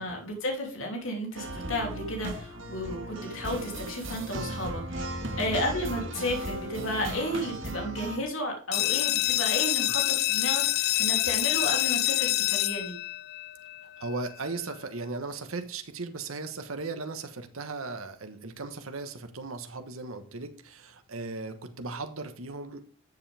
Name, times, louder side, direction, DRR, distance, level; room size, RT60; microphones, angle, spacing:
voice 1, 0.0-12.9, left 1 dB, 70° left, 1 dB, 3.0 m, -33 dB
sound 1, 1.3-8.2, right 1 dB, 65° right, 1.6 m, -36 dB
sound 2, 8.7-14.1, left 15 dB, 50° left, 0.4 m, -27 dB
voice 2, 13.8-22.8, right 3 dB, 80° right, 8 dB, 1.2 m, -37 dB
13.5 x 7.3 x 3.4 m, 0.41 s
head